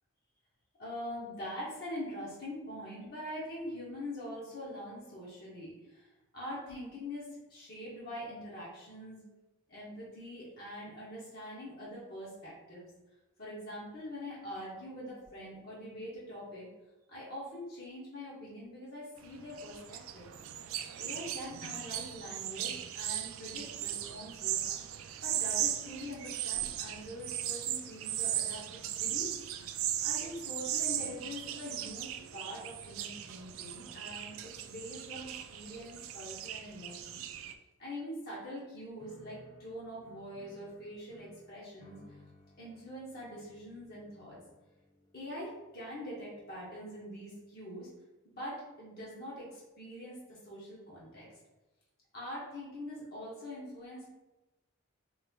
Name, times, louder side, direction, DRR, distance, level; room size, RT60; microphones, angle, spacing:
voice 1, 0.8-9.2 9.7-12.9 13.4-16.7 17.1-20.3 21.0-24.6 25.2-37.3 37.8-42.2 42.6-44.4 45.1-47.9 48.2-51.3 52.1-54.1, equal, 45° left, -6 dB, 1.1 m, -44 dB
sound 1, 19.2-37.5, right 11 dB, 70° right, 0.3 m, -37 dB
sound 2, 39.0-47.3, left 1 dB, 25° left, 0.5 m, -60 dB
3.3 x 3.2 x 3.6 m, 1.1 s
head